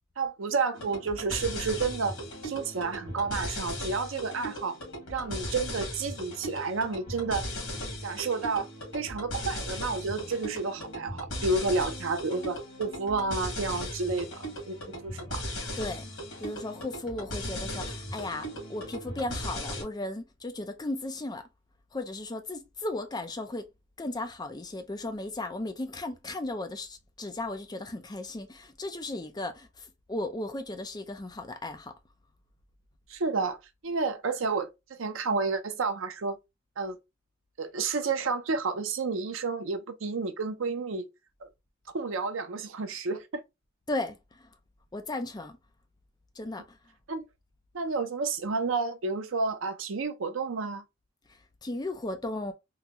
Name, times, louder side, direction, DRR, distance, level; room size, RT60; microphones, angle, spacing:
voice 1, 0.2-2.2 2.4-4.8 5.1-7.4 8.0-8.7 8.9-14.8 15.0-15.4 33.1-33.6 33.8-36.4 36.8-37.0 37.6-41.1 41.4-41.5 41.9-43.4 47.1-47.3 47.7-50.8, right 4 dB, 80° right, 0.6 m, -30 dB
sound 1, 0.7-19.8, left 1 dB, 85° left, 1.9 m, -37 dB
voice 2, 16.4-21.5 21.9-23.7 24.0-31.9 43.9-44.5 44.9-45.6 46.4-46.8 51.6-52.5, left 2 dB, 20° left, 0.5 m, -36 dB
3.8 x 2.2 x 2.9 m
head